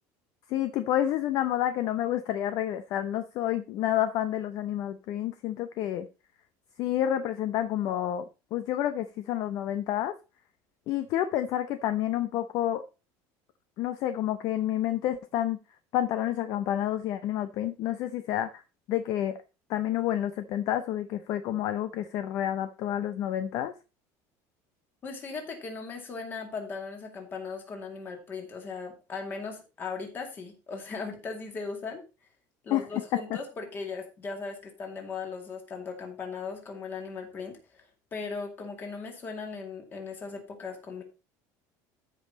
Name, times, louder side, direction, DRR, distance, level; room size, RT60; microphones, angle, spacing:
voice 1, 0.5-6.1 6.8-8.2 8.5-10.1 10.9-12.8 13.8-15.6 15.9-18.6 18.9-19.4 19.7-23.7 32.7-33.2, left 12 dB, 45° left, 0.7 m, -29 dB
voice 2, 25.0-32.0 32.6-41.0, left 4 dB, 25° left, 2.4 m, -38 dB
13.0 x 5.5 x 4.1 m
cardioid pair, 175°, 8 cm